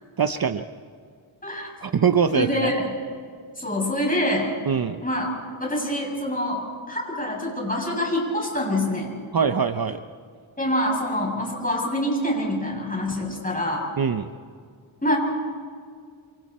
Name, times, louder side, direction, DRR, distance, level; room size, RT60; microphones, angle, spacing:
voice 1, 0.2-0.6 1.8-2.7 4.7-5.0 9.3-10.0 14.0-14.3, right 6 dB, 45° right, 9 dB, 0.8 m, -22 dB
voice 2, 2.3-2.9 3.6-4.5 5.0-5.3 5.6-9.1 10.6-13.9 15.0-15.2, left 1 dB, 15° left, -1 dB, 7.4 m, -25 dB
27.5 x 27.0 x 4.4 m, 2.1 s
wide cardioid pair, 80°, 49 cm